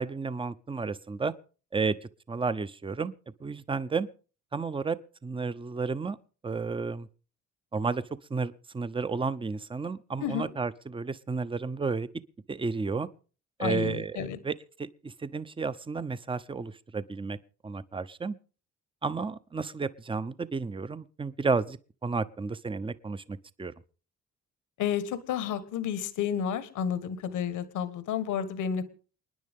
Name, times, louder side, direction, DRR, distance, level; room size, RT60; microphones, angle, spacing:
voice 1, 0.0-1.3 1.7-2.0 2.3-3.1 3.4-4.1 4.5-5.0 5.2-6.2 6.4-7.1 7.7-8.0 8.3-12.1 12.5-13.1 13.6-17.4 17.6-18.4 19.0-23.7, right 4 dB, 15° right, 0.7 m, -32 dB
voice 2, 13.6-14.4 24.8-28.9, left 8 dB, 80° left, 1.5 m, -31 dB
29.0 x 10.0 x 3.6 m
cardioid pair, 90°, 30 cm